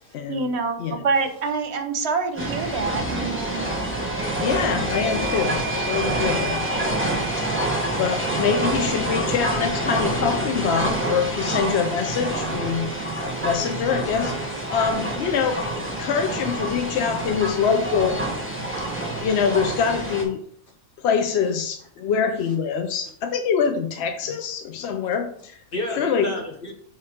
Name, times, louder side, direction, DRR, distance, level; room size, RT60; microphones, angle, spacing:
voice 1, 0.3-3.7, right 4 dB, 55° right, 7 dB, 0.9 m, -26 dB
sound 1, 2.4-20.2, right 1 dB, 10° right, 1.6 m, -27 dB
sound 2, 4.4-10.1, left 4 dB, 85° left, 1.5 m, -36 dB
voice 2, 4.4-6.6 7.4-7.5 8.0-12.9 13.4-14.4 14.7-18.2 19.2-20.4 21.0-25.6 25.9-26.3, left 6 dB, 65° left, 6 dB, 0.7 m, -24 dB
sound 3, 4.8-9.1, right 10 dB, 10° left, 1.7 m, -36 dB
voice 3, 18.6-19.3 24.2-24.3 25.7-26.7, left 1 dB, 45° left, 1 dB, 1.3 m, -34 dB
5.6 x 3.8 x 4.9 m, 0.63 s
omnidirectional pair, 1.4 m